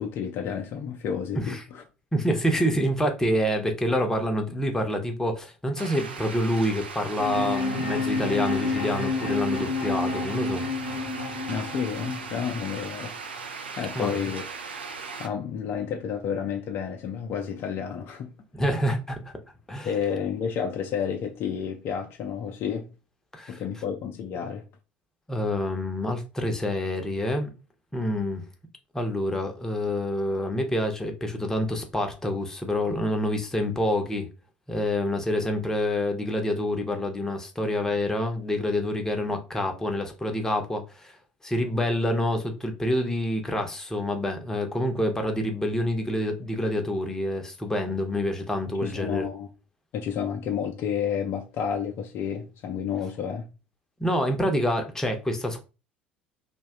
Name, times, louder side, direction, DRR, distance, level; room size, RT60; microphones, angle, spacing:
voice 1, 0.0-1.8 11.5-13.1 13.8-14.4 15.2-18.3 19.8-22.9 23.5-24.6 48.8-49.5 49.9-53.5, left 7 dB, 45° left, 0.4 m, -30 dB
voice 2, 2.1-10.6 13.9-14.2 18.5-19.2 19.7-19.9 23.3-23.6 25.3-27.5 27.9-28.4 28.9-34.3 34.7-41.2 41.4-49.3 54.0-55.6, left 1 dB, 10° left, 0.7 m, -27 dB
sound 1, 5.8-15.3, right 5 dB, 75° right, 0.4 m, -38 dB
sound 2, 7.2-13.2, left 3 dB, 85° left, 0.6 m, -29 dB
2.7 x 2.2 x 3.5 m
figure-of-eight pair, 65°, 6 cm